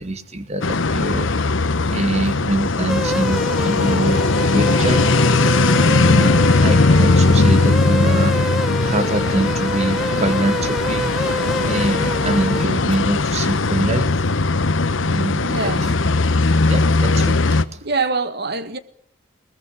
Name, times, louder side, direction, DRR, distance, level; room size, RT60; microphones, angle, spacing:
voice 1, 0.0-1.3 1.9-4.2 4.5-11.3 11.6-14.1 14.9-15.7 16.7-17.4 17.7-17.8, right 2 dB, 35° right, 2.2 m, -24 dB
sound 1, 0.6-17.6, left 3 dB, 65° left, 1.0 m, -18 dB
sound 2, 2.9-12.7, equal, ahead, 1.0 m, -27 dB
sound 3, 3.7-14.3, equal, 45° left, 2.2 m, -38 dB
voice 2, 15.4-15.9 17.8-18.8, right 4 dB, 55° right, 1.7 m, -25 dB
21.5 x 21.0 x 8.5 m
head